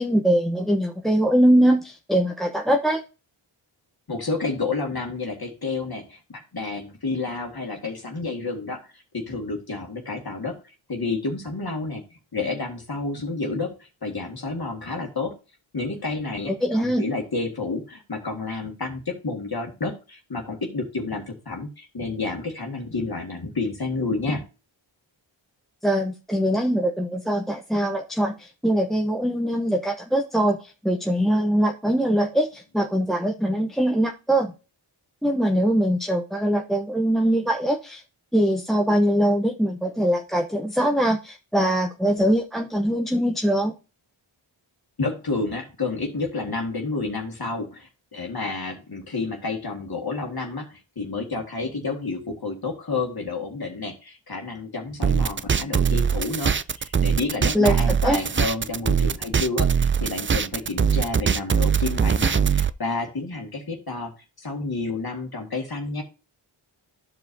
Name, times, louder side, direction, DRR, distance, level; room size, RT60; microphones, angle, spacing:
voice 1, 0.0-3.0 16.6-17.0 25.8-34.5 35.2-38.0 38.3-43.7 57.5-58.2, equal, ahead, 4 dB, 0.8 m, -22 dB
voice 2, 4.1-10.6 10.9-15.3 15.7-24.4 45.0-64.1 64.4-66.0, left 3 dB, 50° left, 1 dB, 1.8 m, -30 dB
sound 1, 55.0-62.7, right 7 dB, 30° right, 0.3 m, -22 dB
12.5 x 4.8 x 2.7 m, 0.31 s
wide cardioid pair, 55°, 49 cm